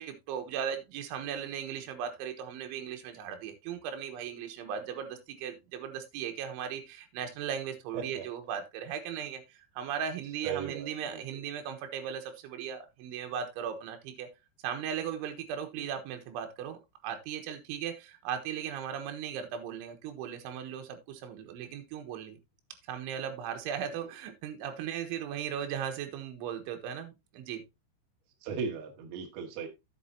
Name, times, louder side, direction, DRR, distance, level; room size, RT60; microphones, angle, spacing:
voice 1, 0.0-14.3 14.6-22.4 22.9-27.6, right 8 dB, 80° right, 5 dB, 3.6 m, -37 dB
voice 2, 7.9-8.3 10.4-11.4 15.7-15.9 28.4-29.7, right 6 dB, 60° right, 2 dB, 3.2 m, -37 dB
11.0 x 7.8 x 2.8 m, 0.22 s
omnidirectional pair, 5.6 m